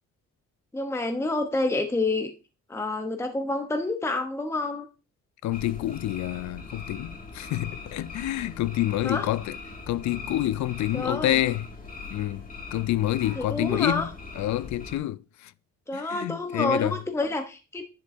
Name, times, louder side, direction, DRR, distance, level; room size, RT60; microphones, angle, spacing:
voice 1, 0.7-2.3 2.7-4.9 9.0-9.3 10.9-11.4 13.4-14.1 15.9-17.8, left 2 dB, 10° left, 0.8 m, -28 dB
voice 2, 5.4-9.5 9.9-11.7 12.1-12.4 12.7-14.1 14.4-15.5 15.9-17.0, left 14 dB, 70° left, 0.5 m, -28 dB
sound 1, 5.5-15.0, left 4 dB, 30° left, 2.0 m, -41 dB
10.5 x 5.2 x 2.7 m
cardioid pair, 90°, 30 cm